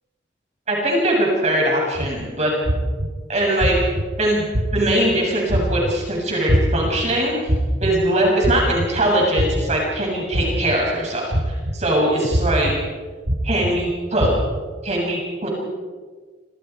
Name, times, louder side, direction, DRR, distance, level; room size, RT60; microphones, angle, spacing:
voice 1, 0.7-2.7 3.3-3.9 4.2-7.3 7.8-12.7 13.4-14.3 14.8-15.5, right 1 dB, 40° right, -2 dB, 7.3 m, -21 dB
sound 1, 1.9-2.1 2.6-3.1 3.6-4.0 4.5-4.9 5.5-5.9 6.5-6.9 7.5-7.9 8.4-8.9 9.4-9.8 10.3-10.7 11.3-11.7 12.3-12.7 13.2-13.7 14.2-14.6, equal, 80° right, 2.9 m, -21 dB
29.0 x 27.5 x 4.8 m, 1.4 s
head